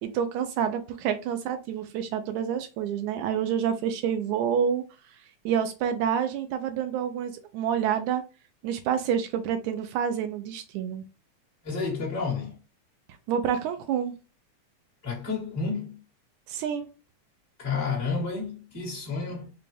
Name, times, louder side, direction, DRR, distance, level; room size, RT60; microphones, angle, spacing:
voice 1, 0.0-4.8 5.5-8.2 8.6-11.0 13.3-14.1 16.5-16.9, right 8 dB, 80° right, 1.9 m, -28 dB
voice 2, 11.6-12.6 15.0-16.0 17.6-19.5, left 4 dB, 20° left, 1.1 m, -30 dB
5.0 x 2.3 x 3.2 m
omnidirectional pair, 3.5 m